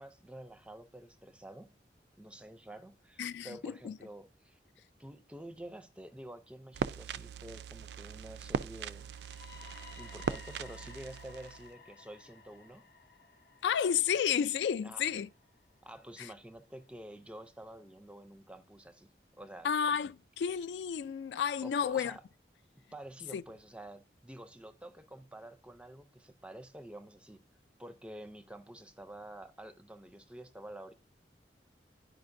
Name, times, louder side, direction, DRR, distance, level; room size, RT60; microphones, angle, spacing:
voice 1, 0.0-1.7 2.2-4.6 5.0-9.1 10.0-12.8 14.8-15.1 15.8-19.7 21.6-22.2 22.9-27.4 27.8-30.9, right 1 dB, 5° right, 0.5 m, -49 dB
voice 2, 3.2-4.0 13.6-15.3 16.2-16.3 19.6-22.2 23.3-23.4, left 8 dB, 80° left, 0.3 m, -31 dB
sound 1, 6.7-11.7, right 6 dB, 70° right, 0.3 m, -39 dB
sound 2, 8.9-16.9, left 5 dB, 65° left, 0.7 m, -56 dB
10.5 x 5.0 x 2.6 m
head